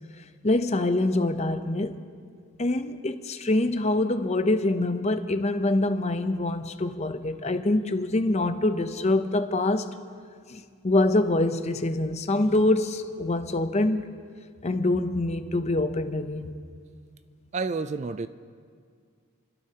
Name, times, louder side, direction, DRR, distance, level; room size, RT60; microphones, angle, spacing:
voice 1, 0.4-1.9 2.6-9.9 10.5-14.0 14.6-16.5, left 2 dB, 30° left, 9 dB, 0.6 m, -25 dB
voice 2, 17.5-18.3, right 4 dB, 30° right, 12 dB, 0.3 m, -29 dB
29.0 x 12.5 x 2.9 m, 2.1 s
head